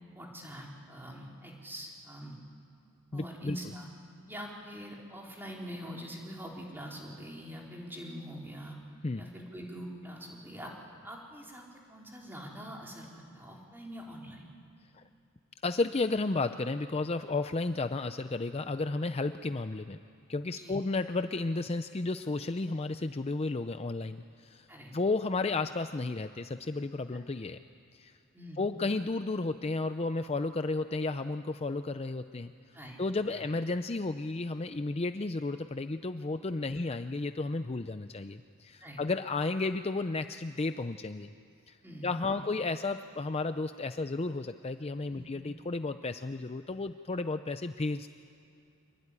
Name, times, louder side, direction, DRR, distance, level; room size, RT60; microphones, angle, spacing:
voice 1, 0.1-2.4 3.1-3.9 4.3-8.8 9.1-10.7 11.0-11.6 11.9-14.5 20.5-20.8 24.7-24.9 28.3-28.6 32.7-33.0 33.3-33.4 36.7-36.8 38.8-39.0 41.8-42.4 45.1-45.3, equal, 10° right, -2 dB, 4.1 m, -44 dB
voice 2, 3.1-3.6 9.0-9.3 14.9-15.0 15.6-20.0 20.3-27.6 27.9-28.1 28.6-32.5 33.0-41.3 41.7-41.8 42.0-48.1, left 3 dB, 30° left, 9 dB, 0.5 m, -33 dB
26.0 x 23.0 x 9.8 m, 2.7 s
head